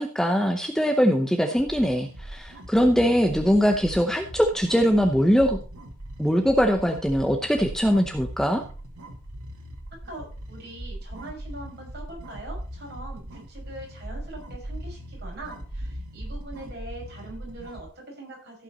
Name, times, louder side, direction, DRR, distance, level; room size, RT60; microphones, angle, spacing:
voice 1, 0.0-5.6 6.2-8.6, equal, ahead, 4 dB, 0.8 m, -22 dB
sound 1, 1.4-17.8, right 1 dB, 90° right, 2.3 m, -39 dB
voice 2, 9.9-18.6, right 2 dB, 50° right, -2 dB, 5.8 m, -42 dB
15.5 x 5.7 x 4.3 m, 0.37 s
head